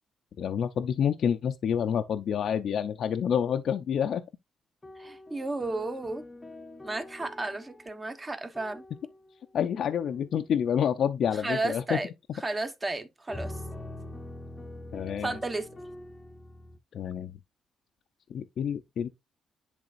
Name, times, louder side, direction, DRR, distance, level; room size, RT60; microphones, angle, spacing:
voice 1, 0.4-4.2 9.5-12.0 14.9-15.4 16.9-17.3 18.3-19.1, left 8 dB, 65° left, 0.5 m, -28 dB
sound 1, 4.8-9.3 9.9-10.3 13.3-16.8, left 1 dB, 15° left, 0.8 m, -44 dB
voice 2, 5.0-6.3 6.8-8.8 11.4-12.1 12.4-13.5 15.2-15.7, right 2 dB, 20° right, 1.2 m, -33 dB
10.5 x 3.5 x 2.5 m
cardioid pair, 90°, 0 cm